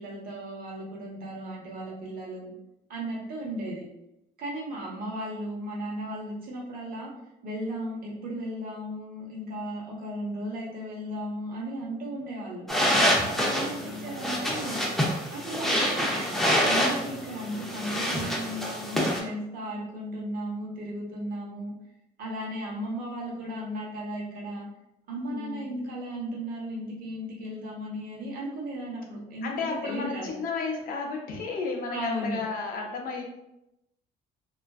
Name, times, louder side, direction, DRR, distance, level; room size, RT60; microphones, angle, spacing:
voice 1, 0.0-2.5 2.9-3.8 4.4-7.1 7.4-12.6 13.2-14.8 15.3-16.3 16.7-21.7 22.2-24.7 25.1-30.3 31.9-32.4, right 1 dB, 60° right, -3 dB, 0.9 m, -35 dB
sound 1, 12.7-19.2, equal, ahead, 0.5 m, -26 dB
voice 2, 13.3-14.4 25.3-25.9 29.4-33.2, left 4 dB, 60° left, 1 dB, 0.6 m, -34 dB
2.4 x 2.3 x 2.3 m, 0.87 s
cardioid pair, 110°, 17 cm